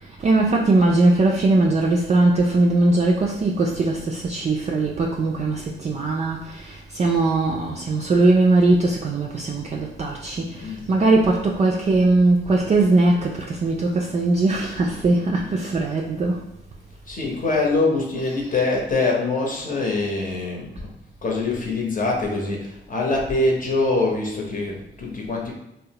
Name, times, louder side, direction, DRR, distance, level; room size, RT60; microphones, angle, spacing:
voice 1, 0.0-16.4 18.1-18.3, right 2 dB, 35° right, -2 dB, 0.4 m, -20 dB
voice 2, 10.6-11.2 17.1-20.9 21.2-25.5, left 3 dB, 45° left, -1 dB, 0.8 m, -24 dB
2.8 x 2.0 x 2.9 m, 0.84 s
cardioid pair, 60°, 20 cm